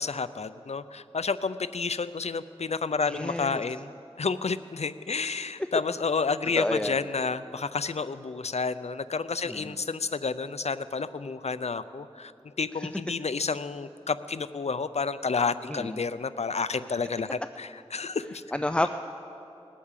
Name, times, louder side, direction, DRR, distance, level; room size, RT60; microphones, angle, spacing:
voice 1, 0.0-3.9 4.2-18.4, left 4 dB, 85° left, 14 dB, 0.5 m, -30 dB
voice 2, 3.1-3.6 5.2-5.3 6.6-7.0 9.5-9.8 12.8-12.9 15.7-16.0 18.5-18.9, left 1 dB, 10° left, 8 dB, 0.4 m, -30 dB
20.0 x 8.5 x 7.4 m, 2.9 s
wide cardioid pair, 50°, 11 cm